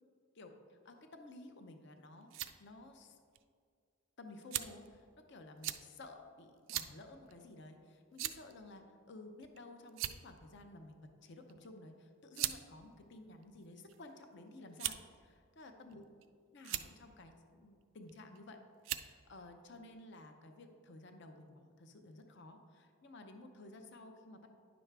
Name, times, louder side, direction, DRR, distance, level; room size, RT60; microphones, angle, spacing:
voice 1, 0.3-2.3 2.6-3.2 4.2-15.0 15.2-16.0 16.5-18.6 18.8-24.5, left 2 dB, 55° left, 5 dB, 0.6 m, -54 dB
sound 1, 2.0-2.5 3.3-3.4 4.5-4.9 5.6-5.8 6.7-6.9 7.3-7.4 8.2-8.5 9.4-9.6 9.9-10.4 11.5-11.7 12.3-12.6 13.4-14.0 14.8-15.1 15.9-16.3 16.6-16.9 18.1-18.4 18.8-19.1, right 13 dB, 60° right, 0.3 m, -39 dB
9.7 x 6.1 x 3.3 m, 2.2 s
head